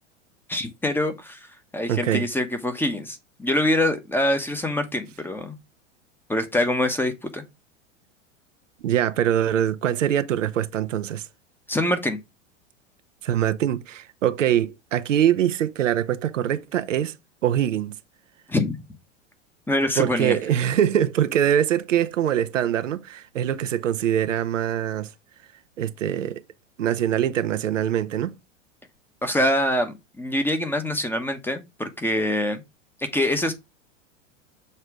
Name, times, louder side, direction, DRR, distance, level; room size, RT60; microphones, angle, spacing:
voice 1, 0.5-1.4 1.7-5.6 6.3-7.4 11.7-12.2 18.5-18.8 19.7-20.4 29.2-32.6 33.0-33.5, left 1 dB, 5° left, 1.0 m, -24 dB
voice 2, 1.9-2.3 8.8-11.3 13.2-17.2 17.4-18.0 20.0-25.1 25.8-26.4 26.8-28.4, right 10 dB, 75° right, 0.7 m, -23 dB
6.7 x 3.2 x 4.9 m
hypercardioid pair, 95°, 37 cm